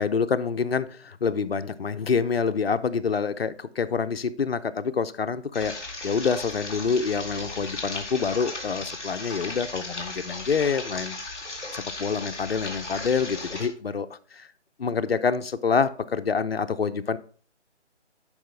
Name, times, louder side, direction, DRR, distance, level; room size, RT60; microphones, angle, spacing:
voice 1, 0.0-5.7 6.0-11.2 11.7-14.1 14.3-14.5 14.8-17.2, left 5 dB, 55° left, 10 dB, 0.6 m, -26 dB
sound 1, 5.5-13.7, left 3 dB, 5° left, 1.0 m, -36 dB
10.5 x 4.8 x 3.3 m, 0.43 s
figure-of-eight pair, 170°, 35 cm